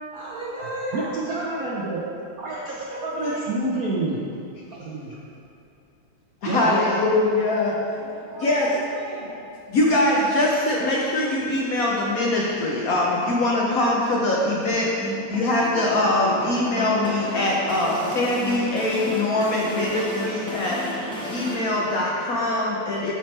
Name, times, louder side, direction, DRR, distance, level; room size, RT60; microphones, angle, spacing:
voice 1, 0.1-1.1 2.9-3.5 8.0-9.3, right 1 dB, 30° right, -7 dB, 1.0 m, -35 dB
voice 2, 0.9-2.0 2.4-2.8 3.0-4.2 4.7-5.2 6.4-7.0, right 2 dB, 70° right, -5 dB, 0.8 m, -28 dB
voice 3, 6.4-7.7 8.4-8.7 9.7-14.9 15.3-20.8 21.3-23.1, left 2 dB, 70° left, -4 dB, 0.8 m, -22 dB
sound 1, 14.7-21.5, equal, 5° left, 0.4 m, -33 dB
10.5 x 4.4 x 3.2 m, 2.6 s
omnidirectional pair, 2.3 m